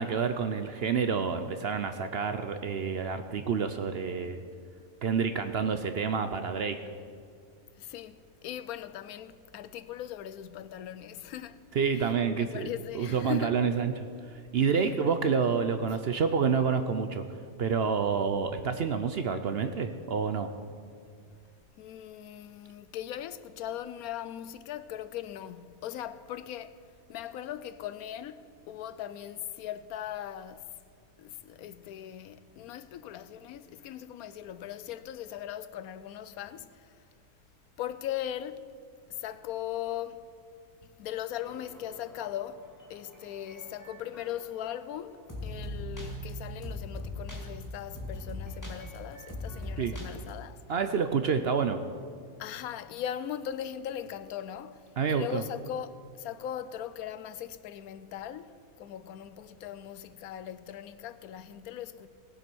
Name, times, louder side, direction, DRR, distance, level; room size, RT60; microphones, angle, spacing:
voice 1, 0.0-4.4 5.0-6.8 11.7-12.7 12.9-13.9 14.3-17.2 17.6-20.5 49.8-49.9 50.7-51.8 55.0-55.4, right 6 dB, 60° right, 0.7 m, -28 dB
voice 2, 7.8-11.6 12.3-13.6 21.2-21.4 21.8-26.8 27.1-30.7 31.2-37.0 37.8-38.7 39.1-40.3 40.8-50.6 52.4-62.1, left 10 dB, 90° left, 1.1 m, -39 dB
sound 1, 41.4-50.3, left 1 dB, 10° left, 2.1 m, -41 dB
18.0 x 7.8 x 6.1 m
omnidirectional pair, 1.5 m